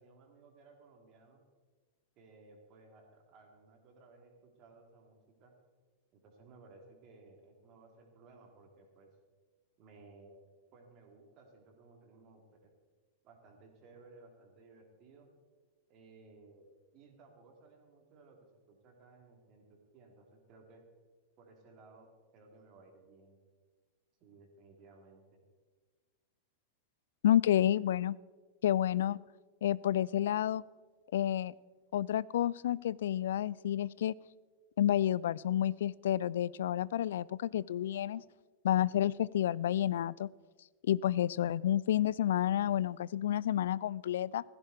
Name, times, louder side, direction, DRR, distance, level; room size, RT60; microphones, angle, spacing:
voice 1, 0.0-1.4 2.2-5.5 6.1-9.1 9.8-10.5 10.7-12.7 13.2-15.3 15.9-16.7 16.9-18.4 18.7-20.8 21.4-23.4 24.2-25.4, right 3 dB, 40° right, 3 dB, 3.3 m, -59 dB
voice 2, 27.2-28.2 28.6-29.2 29.6-30.6 31.1-31.5 31.9-34.1 34.8-38.2 38.6-40.3 40.8-44.4, left 11 dB, 60° left, 22 dB, 0.3 m, -30 dB
16.5 x 15.0 x 4.5 m, 1.4 s
figure-of-eight pair, 90°, 0 cm